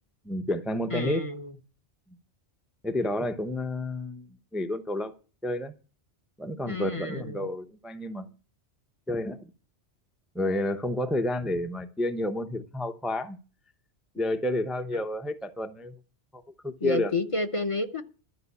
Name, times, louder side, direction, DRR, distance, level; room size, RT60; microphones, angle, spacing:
voice 1, 0.2-1.3 2.8-5.1 5.4-5.7 6.4-8.3 9.1-9.4 10.3-13.4 14.1-15.9 16.3-17.1, left 1 dB, ahead, 0.6 m, -30 dB
voice 2, 0.9-1.6 6.6-7.5 16.8-18.0, left 2 dB, 30° left, 0.9 m, -30 dB
12.5 x 5.4 x 8.3 m
omnidirectional pair, 1.2 m